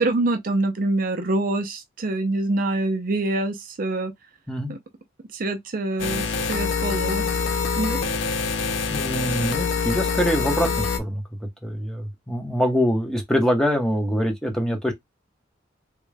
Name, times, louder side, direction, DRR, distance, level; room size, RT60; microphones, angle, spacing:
voice 1, 0.0-4.1 4.7-4.8 5.3-7.4 7.8-8.0, right 2 dB, 45° right, 0.5 m, -25 dB
sound 1, 6.0-11.0, left 5 dB, 75° left, 0.6 m, -25 dB
voice 2, 8.9-14.9, equal, 5° left, 0.8 m, -24 dB
3.6 x 2.2 x 3.2 m
head